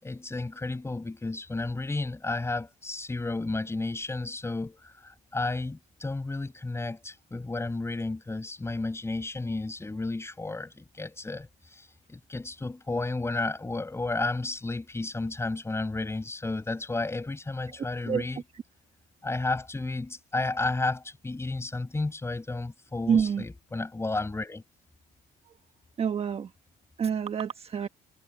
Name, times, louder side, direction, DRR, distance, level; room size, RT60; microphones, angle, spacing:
voice 1, 0.0-18.4 19.2-24.6, left 2 dB, 15° left, 6.9 m, -32 dB
voice 2, 23.1-23.4 25.5-25.6 26.0-26.5 27.0-27.9, right 7 dB, 35° right, 1.2 m, -27 dB
cardioid pair, 110°, 17 cm